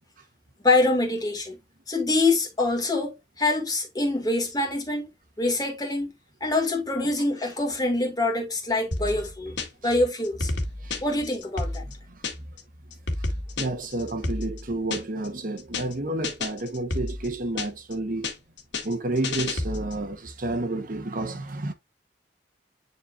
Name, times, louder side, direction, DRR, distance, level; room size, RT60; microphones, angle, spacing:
voice 1, 0.6-1.6 1.9-5.1 5.4-6.1 6.4-9.6 9.8-10.5 11.0-11.8, left 2 dB, 20° left, 2.2 m, -25 dB
sound 1, 8.9-9.9 10.2-12.6 12.9-15.3 15.6-15.9 16.2-17.9 18.2-20.0, left 2 dB, 90° left, 1.9 m, -31 dB
voice 2, 11.8-12.5 13.2-13.3 13.6-18.3 18.8-21.7, right 2 dB, 50° right, 1.1 m, -30 dB
10.0 x 4.2 x 2.5 m
head